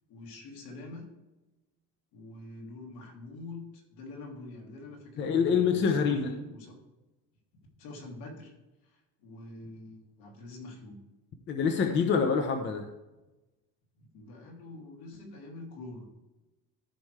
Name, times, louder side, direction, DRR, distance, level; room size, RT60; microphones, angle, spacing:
voice 1, 0.1-1.0 2.1-6.8 7.8-8.5 8.8-11.0 14.0-16.1, left 2 dB, 70° left, 0 dB, 3.1 m, -45 dB
voice 2, 5.2-6.3 11.5-12.9, left 6 dB, 30° left, 5 dB, 0.9 m, -26 dB
14.0 x 6.0 x 3.3 m, 1.0 s
cardioid pair, 160°, 37 cm